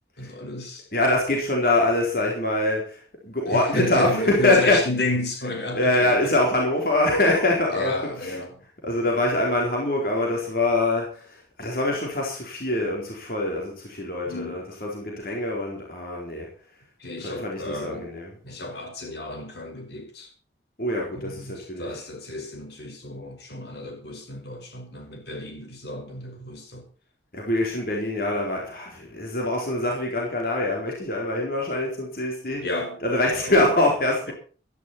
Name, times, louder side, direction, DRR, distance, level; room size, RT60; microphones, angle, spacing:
voice 1, 0.2-0.9 3.5-6.3 7.7-8.6 14.3-14.6 17.0-18.1 18.4-20.3 21.1-26.9 32.6-33.0 33.5-33.7, left 2 dB, 75° left, 5.1 m, -32 dB
voice 2, 0.9-3.0 3.2-4.8 5.7-8.0 8.2-8.4 8.8-16.5 17.2-18.3 20.8-21.9 27.3-32.6 33.0-34.3, left 2 dB, 55° left, 4.1 m, -24 dB
15.5 x 13.5 x 4.3 m
head